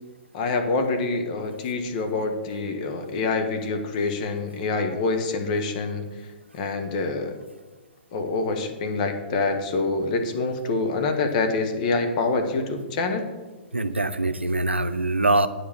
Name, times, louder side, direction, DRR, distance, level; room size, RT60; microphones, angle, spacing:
voice 1, 0.3-6.0 6.5-7.3 8.1-13.2, left 3 dB, 40° left, 6 dB, 1.4 m, -26 dB
voice 2, 13.7-15.5, right 2 dB, 90° right, 11 dB, 0.6 m, -23 dB
9.0 x 4.9 x 7.5 m, 1.2 s
figure-of-eight pair, 120°, 6 cm